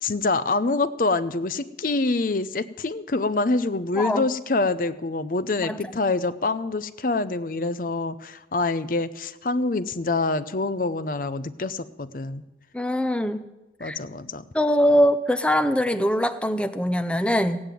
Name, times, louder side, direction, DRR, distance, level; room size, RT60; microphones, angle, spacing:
voice 1, 0.0-12.4 13.8-14.4, left 3 dB, 50° left, 14 dB, 0.6 m, -26 dB
voice 2, 4.0-4.3 5.6-5.8 12.7-13.4 13.8-14.0 14.5-17.6, equal, 5° left, 10 dB, 0.6 m, -22 dB
16.0 x 8.7 x 9.1 m, 1.0 s
head